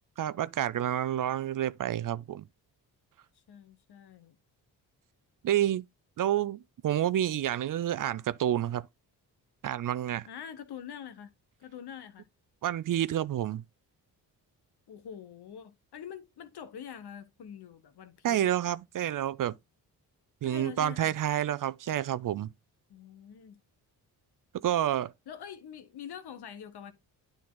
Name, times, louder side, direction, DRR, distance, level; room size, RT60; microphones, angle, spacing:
voice 1, 0.2-2.4 5.4-5.8 6.2-8.9 9.6-10.3 12.6-13.6 18.2-19.5 20.4-22.5 24.6-25.1, right 11 dB, 50° right, 0.5 m, -29 dB
voice 2, 3.5-4.4 10.3-11.3 11.6-12.3 14.9-18.5 20.4-21.2 22.9-23.6 25.3-26.9, left 8 dB, 65° left, 1.3 m, -45 dB
9.4 x 4.0 x 3.8 m
supercardioid pair, 60°, 43 cm